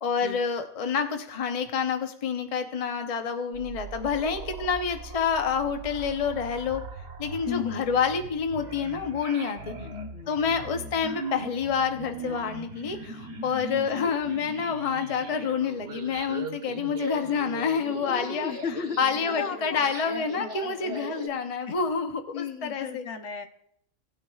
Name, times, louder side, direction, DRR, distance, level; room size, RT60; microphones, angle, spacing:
voice 1, 0.0-6.8 7.2-9.7 10.3-18.5 19.0-23.1, left 6 dB, 35° left, 6 dB, 0.7 m, -28 dB
sound 1, 3.5-21.3, right 3 dB, 60° right, 1.3 m, -39 dB
voice 2, 7.5-7.9 10.1-10.5 13.9-14.1 18.1-19.0 19.3-19.8 21.1-21.2 21.7-21.8 22.3-23.5, left 6 dB, 70° left, 7 dB, 1.2 m, -35 dB
17.5 x 9.3 x 2.4 m, 0.72 s
omnidirectional pair, 1.3 m